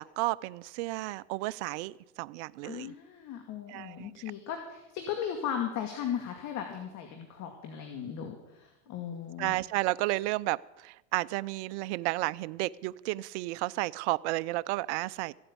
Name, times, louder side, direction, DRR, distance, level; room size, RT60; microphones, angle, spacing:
voice 1, 0.0-2.9 3.7-4.1 9.4-15.3, right 20 dB, 65° right, 17 dB, 0.6 m, -32 dB
voice 2, 2.6-9.6, left 8 dB, 50° left, 4 dB, 2.3 m, -37 dB
15.5 x 8.7 x 8.7 m, 0.97 s
supercardioid pair, 110°, 36 cm